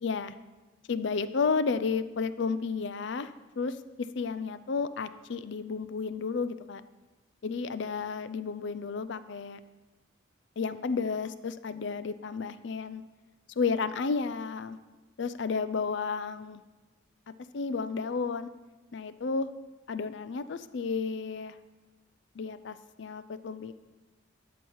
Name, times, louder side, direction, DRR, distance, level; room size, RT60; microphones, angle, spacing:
voice 1, 0.0-0.3 0.9-3.3 3.6-6.8 7.4-9.6 10.6-13.0 13.6-14.8 15.2-16.6 17.5-18.5 18.9-19.5 19.9-21.5 22.3-23.7, left 5 dB, 60° left, 13 dB, 0.5 m, -32 dB
12.5 x 4.6 x 7.2 m, 1.2 s
head